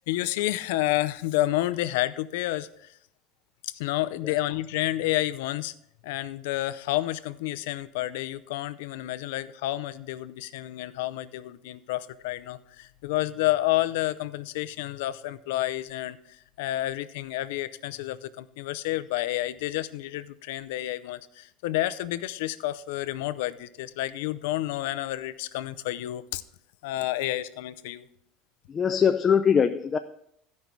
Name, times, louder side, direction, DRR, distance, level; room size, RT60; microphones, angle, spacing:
voice 1, 0.1-2.9 3.6-5.7 6.0-26.4 26.8-28.1, left 16 dB, 85° left, 14 dB, 0.5 m, -30 dB
voice 2, 28.7-30.0, left 7 dB, 25° left, 8 dB, 0.4 m, -22 dB
14.5 x 5.4 x 4.5 m, 0.70 s
cardioid pair, 155°, 0 cm